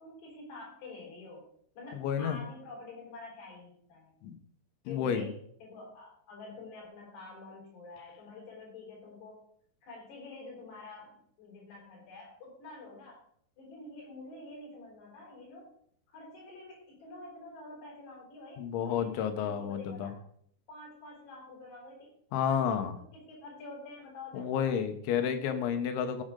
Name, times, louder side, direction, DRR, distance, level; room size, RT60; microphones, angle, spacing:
voice 1, 0.0-1.5 1.8-4.1 4.9-9.4 9.8-13.2 13.6-15.7 16.1-19.2 19.4-20.2 20.7-22.1 22.4-24.7, left 3 dB, 60° left, -3 dB, 6.3 m, -48 dB
voice 2, 1.9-2.4 4.2-4.4 4.9-5.3 18.6-20.1 22.3-22.9 24.3-26.2, left 8 dB, 85° left, 7 dB, 3.4 m, -31 dB
17.0 x 7.6 x 3.8 m, 0.65 s
omnidirectional pair, 5.3 m